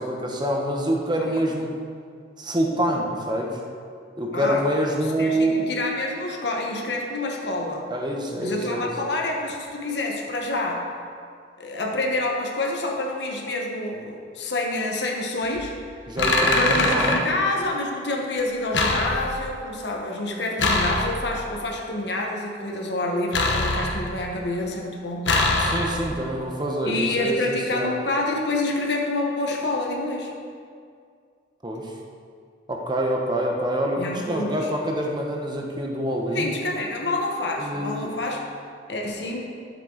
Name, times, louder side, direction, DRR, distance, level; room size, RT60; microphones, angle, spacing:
voice 1, 0.0-1.8 2.4-3.6 4.2-5.7 7.9-8.9 16.1-17.2 25.6-27.9 31.6-31.9 32.7-36.5 37.6-38.1, right 1 dB, 25° right, 0 dB, 1.1 m, -26 dB
voice 2, 4.3-7.9 8.4-10.9 11.6-15.7 16.5-25.3 26.8-30.3 34.0-34.7 36.3-38.4 38.9-39.4, left 2 dB, 70° left, 0 dB, 1.3 m, -27 dB
sound 1, 15.4-15.7 16.2-17.2 18.7-19.5 20.6-21.4 23.3-24.3 25.3-26.2, left 2 dB, 85° left, 1.1 m, -23 dB
11.5 x 7.6 x 3.9 m, 2.2 s
head